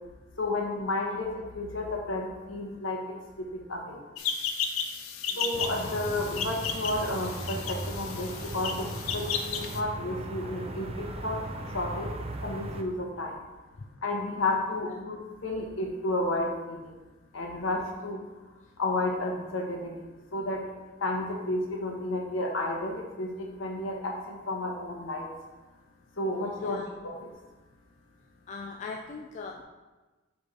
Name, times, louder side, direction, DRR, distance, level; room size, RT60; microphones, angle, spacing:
voice 1, 0.4-3.0 3.4-4.0 5.4-8.9 9.1-11.4 11.7-12.1 12.4-13.4 14.0-16.8 17.3-18.2 18.8-19.9 20.3-20.6 21.0-25.3 26.2-26.8, left 2 dB, 70° left, 0 dB, 1.1 m, -31 dB
sound 1, 4.2-9.8, left 6 dB, 85° left, 0.5 m, -34 dB
voice 2, 5.3-5.6 11.2-11.3 14.9-15.0 18.6-18.7 26.6-26.9 28.5-29.6, left 4 dB, 35° left, 2 dB, 0.3 m, -41 dB
sound 2, 5.5-12.8, right 1 dB, 30° right, 0.5 m, -38 dB
6.7 x 3.5 x 4.1 m, 1.2 s
head